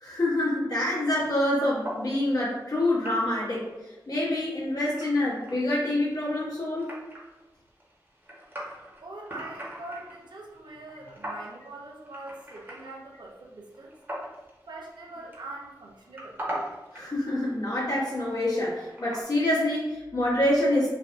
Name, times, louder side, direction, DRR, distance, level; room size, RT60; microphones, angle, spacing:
voice 1, 0.0-6.9 16.9-20.9, left 1 dB, 55° left, -6 dB, 1.3 m, -26 dB
sound 1, 0.8-19.2, equal, 25° right, 1.0 m, -43 dB
voice 2, 9.0-13.9 14.7-16.4, right 2 dB, 75° right, -2 dB, 0.6 m, -43 dB
3.3 x 2.4 x 2.5 m, 1.1 s
cardioid pair, 50°, 8 cm